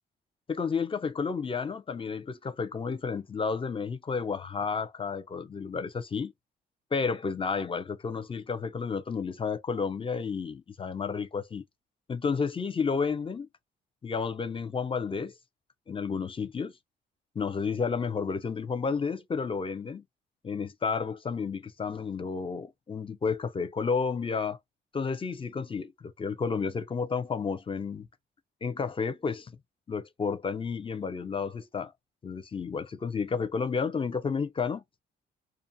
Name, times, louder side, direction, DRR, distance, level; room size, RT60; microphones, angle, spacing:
voice 1, 0.5-6.3 6.9-11.6 12.1-13.5 14.0-15.4 15.9-16.7 17.3-20.0 20.4-24.6 24.9-28.1 28.6-29.6 29.9-31.9 32.2-34.8, left 5 dB, 25° left, 0.6 m, -31 dB
2.5 x 2.2 x 2.6 m
cardioid pair, 90°, 20 cm